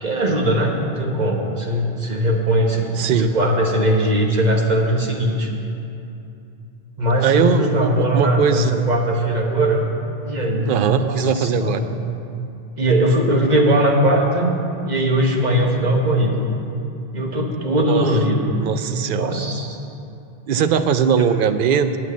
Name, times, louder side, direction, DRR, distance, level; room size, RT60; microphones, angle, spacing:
voice 1, 0.0-2.9 3.2-5.5 7.0-9.9 10.2-11.9 12.8-14.5 14.8-16.5 17.1-18.6 18.9-19.8 21.2-21.3, right 1 dB, 45° right, 0 dB, 1.3 m, -20 dB
voice 2, 2.9-3.3 7.2-8.7 10.7-11.8 17.9-18.1 18.6-19.4 20.5-22.0, right 7 dB, 60° right, 10 dB, 0.7 m, -20 dB
9.3 x 6.2 x 8.3 m, 2.7 s
omnidirectional pair, 1.0 m